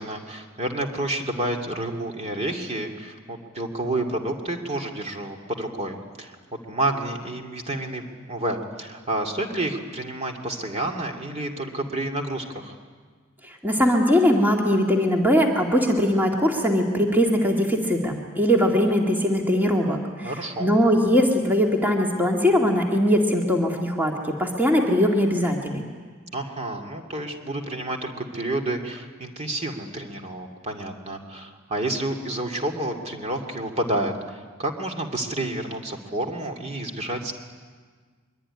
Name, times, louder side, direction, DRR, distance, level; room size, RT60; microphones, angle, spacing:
voice 1, 0.0-12.8 20.2-20.7 26.3-37.3, right 1 dB, 30° right, 2 dB, 2.5 m, -30 dB
voice 2, 13.4-20.3 20.6-25.8, equal, 10° right, 0 dB, 2.3 m, -21 dB
23.5 x 23.5 x 9.9 m, 1.5 s
head